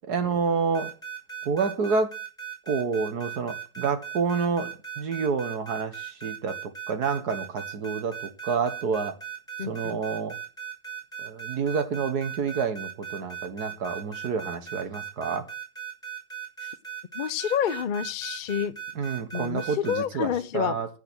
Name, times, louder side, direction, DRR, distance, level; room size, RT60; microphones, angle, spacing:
voice 1, 0.1-0.9 1.5-2.1 2.7-8.2 8.4-9.2 9.7-10.4 11.2-15.5 19.0-20.9, right 5 dB, 70° right, 1.9 m, -28 dB
sound 1, 0.7-20.0, right 9 dB, ahead, 6.9 m, -37 dB
voice 2, 9.6-10.0 17.1-18.7 19.3-20.8, left 9 dB, 65° left, 0.4 m, -28 dB
16.0 x 5.9 x 6.3 m
omnidirectional pair, 1.8 m